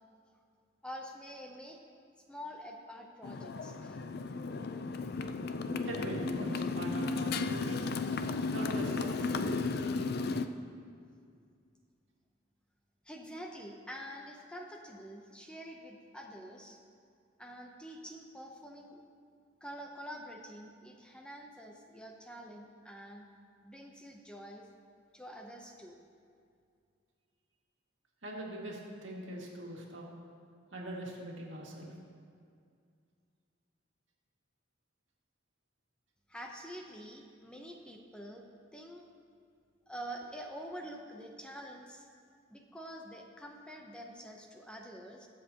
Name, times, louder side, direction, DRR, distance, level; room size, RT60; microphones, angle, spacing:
voice 1, 0.8-1.8 2.3-4.3 13.0-16.8 17.4-19.0 19.6-23.3 23.6-24.6 25.1-26.0 36.3-38.4 38.7-39.1 39.9-42.1 42.5-45.3, equal, 5° left, 1 dB, 0.7 m, -47 dB
Motorcycle, 3.2-10.5, left 3 dB, 55° left, 0.5 m, -34 dB
voice 2, 5.8-7.9 8.5-9.4 28.2-30.1 30.7-31.9, right 1 dB, 75° right, -2 dB, 2.1 m, -41 dB
22.0 x 7.5 x 2.9 m, 2.3 s
head